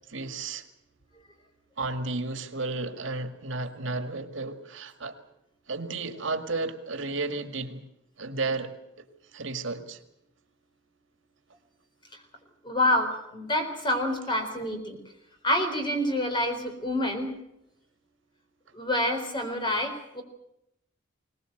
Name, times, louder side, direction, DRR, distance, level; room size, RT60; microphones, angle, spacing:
voice 1, 0.1-0.6 1.8-5.2 5.7-7.8 8.2-8.7 9.3-10.0, right 3 dB, 85° right, 8 dB, 2.0 m, -33 dB
voice 2, 12.6-15.0 15.4-17.3 18.7-20.2, left 1 dB, 25° left, 4 dB, 4.1 m, -27 dB
21.5 x 19.5 x 7.9 m, 0.82 s
head